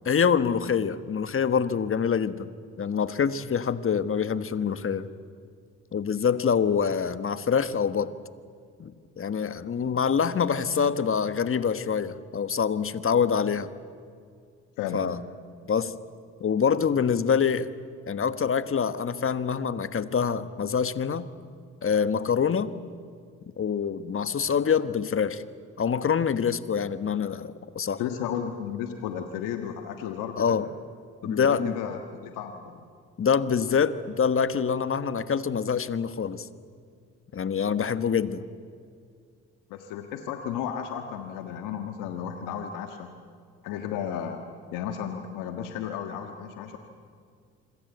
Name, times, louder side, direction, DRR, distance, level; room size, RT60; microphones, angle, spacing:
voice 1, 0.0-2.5 2.8-5.1 5.9-8.1 8.8-13.7 14.9-15.2 15.7-15.9 16.4-17.7 18.1-21.3 21.8-22.7 23.6-25.4 25.8-28.0 30.4-30.7 31.2-31.8 33.2-36.5 37.3-38.5, left 6 dB, 45° left, 12 dB, 1.4 m, -25 dB
voice 2, 14.8-15.1 28.0-30.6 31.2-32.9 39.7-43.1 43.6-44.4 44.7-46.8, left 8 dB, 80° left, 5 dB, 1.6 m, -34 dB
26.5 x 23.5 x 8.2 m, 2.2 s
supercardioid pair, 55°, 31 cm